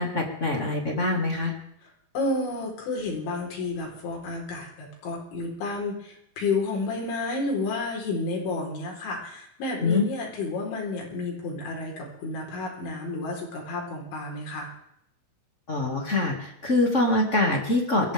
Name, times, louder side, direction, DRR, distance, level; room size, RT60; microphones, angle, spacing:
voice 1, 0.0-1.5 9.8-10.1 15.7-18.1, left 2 dB, 30° left, 1 dB, 1.4 m, -24 dB
voice 2, 1.8-14.7, left 3 dB, 85° left, -1 dB, 6.8 m, -31 dB
21.5 x 15.0 x 3.6 m, 0.75 s
omnidirectional pair, 5.2 m